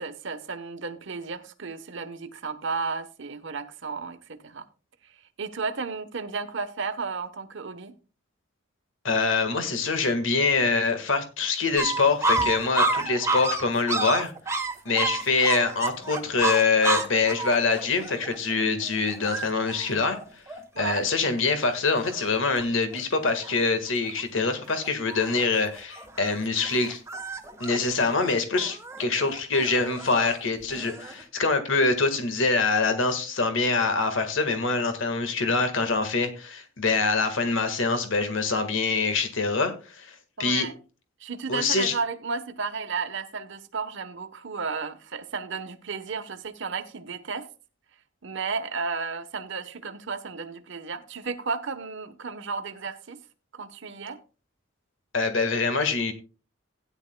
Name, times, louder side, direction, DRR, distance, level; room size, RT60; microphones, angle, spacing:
voice 1, 0.0-4.7 5.0-7.9 20.7-21.1 40.4-40.7 41.2-47.5 48.2-53.2 53.5-54.2, right 4 dB, 65° right, 1.0 m, -33 dB
voice 2, 9.0-14.3 14.8-20.2 20.8-27.0 27.6-40.7 41.5-41.9 55.1-56.1, left 4 dB, 70° left, 1.6 m, -25 dB
sound 1, 11.8-21.2 21.7-21.8 22.0-22.6 22.9-23.6 24.0-24.4 24.7-31.2, right 3 dB, 15° right, 1.1 m, -30 dB
16.5 x 10.0 x 2.2 m
head